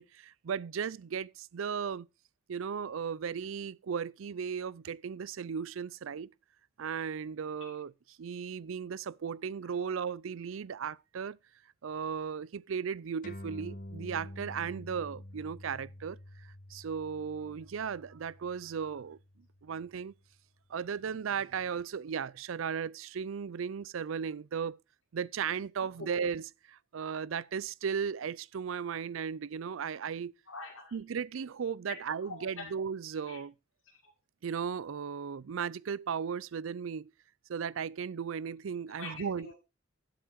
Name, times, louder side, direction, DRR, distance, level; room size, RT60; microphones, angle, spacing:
voice 1, 0.0-2.1 2.5-6.3 6.8-7.9 8.2-11.4 11.8-16.2 16.7-19.2 19.6-20.1 20.7-24.8 25.1-30.3 30.9-33.5 34.4-37.1 37.5-39.5, right 6 dB, 80° right, 0.4 m, -36 dB
sound 1, 13.2-20.1, left 1 dB, 45° left, 1.1 m, -48 dB
voice 2, 30.5-31.0 31.9-32.7 33.3-33.4 38.9-39.6, left 3 dB, 85° left, 4.9 m, -44 dB
12.0 x 7.8 x 4.6 m
head